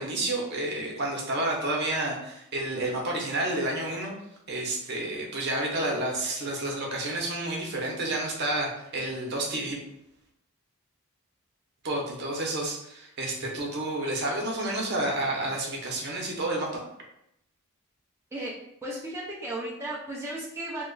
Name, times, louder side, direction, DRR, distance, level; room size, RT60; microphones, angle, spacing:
voice 1, 0.0-4.1 4.5-9.8 11.8-16.8, right 1 dB, 50° right, -1 dB, 0.8 m, -30 dB
voice 2, 18.8-20.9, right 1 dB, 10° right, -6 dB, 0.4 m, -35 dB
3.0 x 2.4 x 3.8 m, 0.79 s
head